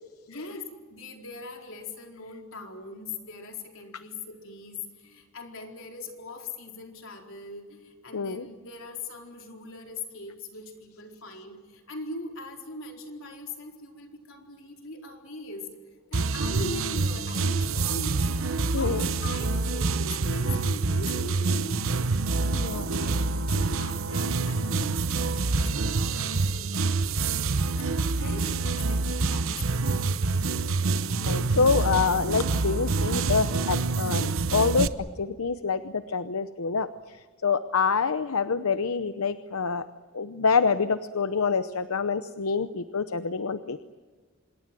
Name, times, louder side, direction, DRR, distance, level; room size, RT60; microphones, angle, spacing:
voice 1, 0.3-15.8 16.1-18.4 18.7-21.9 22.7-23.3 23.5-27.2 27.8-27.9 28.2-30.1, left 2 dB, 65° left, 3 dB, 4.4 m, -40 dB
voice 2, 8.1-8.5 18.7-19.1 22.5-22.9 31.2-34.9 35.2-37.2 37.4-39.8 40.1-43.8, left 5 dB, 85° left, 12 dB, 0.8 m, -26 dB
sound 1, 16.1-34.9, right 3 dB, 70° right, 1.0 m, -27 dB
26.5 x 22.0 x 7.7 m, 1.5 s
head